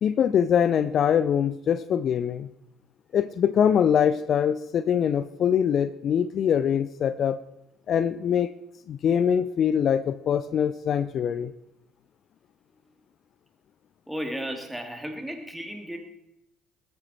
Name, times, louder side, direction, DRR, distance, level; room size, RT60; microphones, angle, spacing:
voice 1, 0.0-2.5 3.1-7.4 7.9-8.5 8.9-11.5, left 8 dB, 50° left, 15 dB, 0.5 m, -23 dB
voice 2, 14.1-16.0, equal, 5° right, 4 dB, 2.8 m, -34 dB
21.0 x 8.9 x 4.4 m, 0.82 s
figure-of-eight pair, 50°, 0 cm